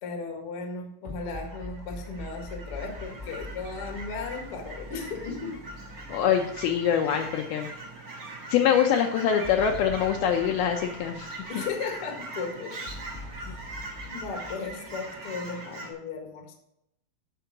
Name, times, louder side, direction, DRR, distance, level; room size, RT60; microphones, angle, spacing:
voice 1, 0.0-5.6 11.5-12.8 13.4-13.6 14.1-16.5, left 4 dB, 45° left, 2 dB, 2.0 m, -36 dB
sound 1, 1.0-7.4 7.8-7.9 9.4-11.9 12.8-15.6, left 3 dB, 15° right, 3.1 m, -43 dB
Fowl / Chirp tweet, 1.2-15.9, right 2 dB, 75° right, 0.8 m, -41 dB
voice 2, 6.1-7.7 8.5-11.3, left 8 dB, 75° left, 3 dB, 2.4 m, -24 dB
10.5 x 6.9 x 4.7 m, 0.79 s
omnidirectional pair, 4.7 m